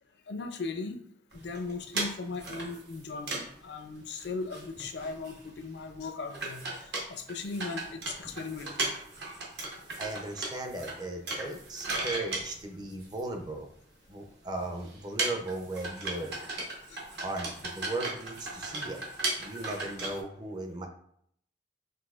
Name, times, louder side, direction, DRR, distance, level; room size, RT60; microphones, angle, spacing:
voice 1, 0.3-1.0 1.3-6.6 7.1-8.9 16.9-17.0, left 4 dB, 65° left, 6 dB, 0.4 m, -38 dB
sound 1, 1.3-3.6 3.8-3.9 4.1-4.3 4.5-5.6 5.9-6.0 6.3-13.5 14.2-14.3 14.6-20.2, right 2 dB, 65° right, 1.0 m, -36 dB
voice 2, 10.0-13.7 14.1-16.4 17.2-19.0 19.4-20.9, right 2 dB, 20° right, 4 dB, 0.5 m, -37 dB
6.0 x 2.7 x 2.4 m, 0.68 s
head